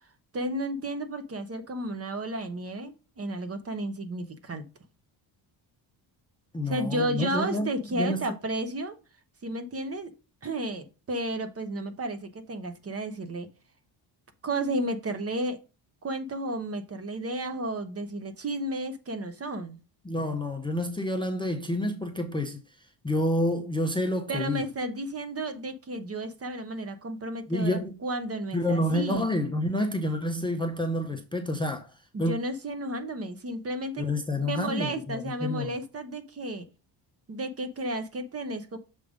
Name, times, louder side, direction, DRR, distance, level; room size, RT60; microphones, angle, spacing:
voice 1, 0.3-4.7 6.7-9.0 9.4-10.1 10.4-13.5 14.4-15.6 16.0-19.8 24.3-29.3 32.1-34.1 34.4-36.7 37.3-38.8, right 1 dB, 30° right, 0.8 m, -32 dB
voice 2, 6.5-8.2 20.1-22.6 23.0-24.6 27.5-27.9 28.5-31.9 32.2-32.3 34.0-35.7, left 1 dB, 10° left, 0.6 m, -28 dB
6.7 x 3.6 x 5.0 m
cardioid pair, 135°, 48 cm